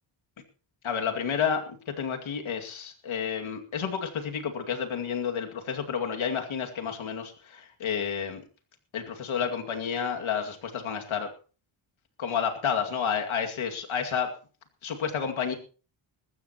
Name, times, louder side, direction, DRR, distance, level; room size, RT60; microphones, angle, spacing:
voice 1, 0.8-8.4 8.9-11.3 12.2-14.3 14.8-15.5, left 7 dB, 75° left, 4 dB, 2.4 m, -30 dB
20.0 x 15.0 x 3.0 m, 0.37 s
wide cardioid pair, 125°, 48 cm